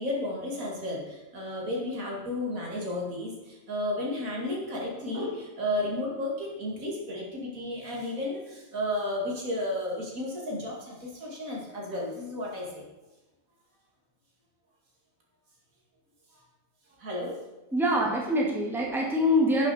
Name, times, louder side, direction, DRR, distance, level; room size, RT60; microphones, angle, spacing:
voice 1, 0.0-12.8 17.0-17.4, left 1 dB, 75° right, -2 dB, 2.6 m, -33 dB
voice 2, 17.7-19.7, left 1 dB, ahead, -2 dB, 1.7 m, -24 dB
11.0 x 7.0 x 4.2 m, 1.0 s
omnidirectional pair, 1.5 m